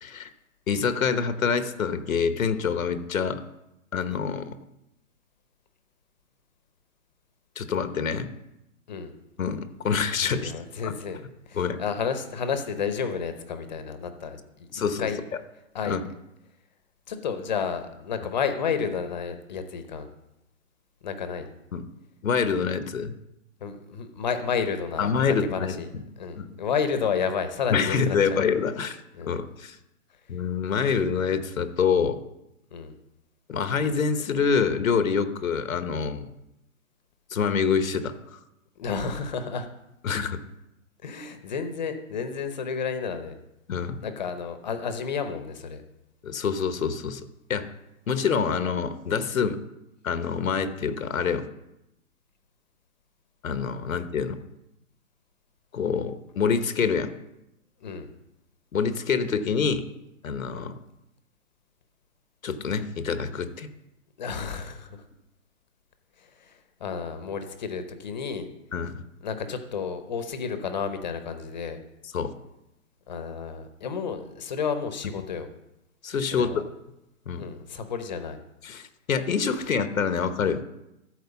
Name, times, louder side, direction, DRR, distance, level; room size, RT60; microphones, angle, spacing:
voice 1, 0.7-3.4 3.9-4.5 7.6-8.3 9.4-10.5 10.8-10.9 11.5-11.8 14.7-15.1 15.9-16.0 21.7-21.8 22.2-23.1 25.0-25.8 26.4-26.5 27.7-29.0 29.3-29.7 30.3-32.2 33.5-36.3 37.3-38.4 40.0-40.4 43.7-44.0 46.2-47.2 47.5-47.7 48.1-49.6 50.0-51.5 53.4-54.4 55.7-57.1 58.7-59.9 60.2-60.7 62.4-63.7 68.7-69.0 72.1-72.3 76.0-76.6 77.3-77.5 78.6-80.6, left 6 dB, 85° left, 10 dB, 1.1 m, -26 dB
voice 2, 10.3-11.2 11.5-14.7 15.0-15.2 15.7-16.0 17.1-20.1 21.0-21.5 23.6-28.4 29.1-29.4 32.7-32.9 38.8-39.7 41.0-43.4 44.0-45.8 57.8-58.1 60.5-60.7 64.2-65.0 66.2-68.5 69.2-71.8 73.1-75.5 76.3-76.6 77.4-78.4, left 6 dB, 35° left, 9 dB, 0.8 m, -31 dB
13.0 x 4.6 x 7.0 m, 0.90 s
hypercardioid pair, 165°, 40 cm